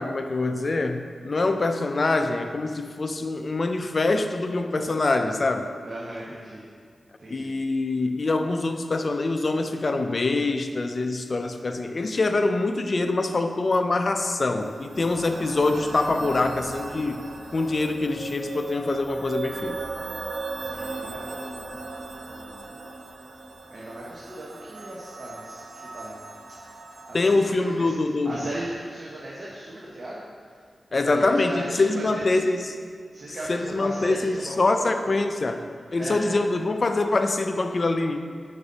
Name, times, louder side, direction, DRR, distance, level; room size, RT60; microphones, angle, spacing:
voice 1, 0.0-5.7 7.3-17.2 17.5-19.8 27.1-28.3 30.9-32.6 33.5-35.6 35.9-38.2, left 2 dB, 55° left, 7 dB, 0.4 m, -24 dB
voice 2, 5.8-6.6 7.2-7.5 20.6-22.8 23.7-26.4 27.1-28.0 28.2-30.2 30.9-32.4 33.1-35.1 36.0-36.2, right 1 dB, 55° right, -5 dB, 0.9 m, -37 dB
sound 1, 14.6-27.4, right 3 dB, 90° right, 0.5 m, -38 dB
5.3 x 4.9 x 4.0 m, 2.2 s
cardioid pair, 55°, 0 cm